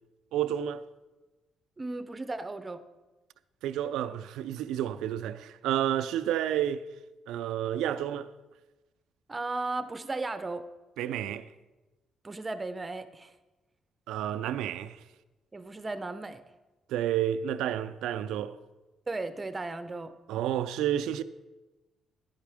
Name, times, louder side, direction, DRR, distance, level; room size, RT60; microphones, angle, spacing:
voice 1, 0.3-0.8 3.6-6.9 7.3-8.3 11.0-11.5 14.1-15.0 16.9-18.6 20.3-21.2, right 11 dB, 90° right, 0.4 m, -30 dB
voice 2, 1.8-2.8 9.3-10.7 12.2-13.3 15.5-16.4 19.1-20.1, right 3 dB, 25° right, 0.6 m, -35 dB
10.5 x 10.5 x 3.5 m
cardioid pair, 90°, 0 cm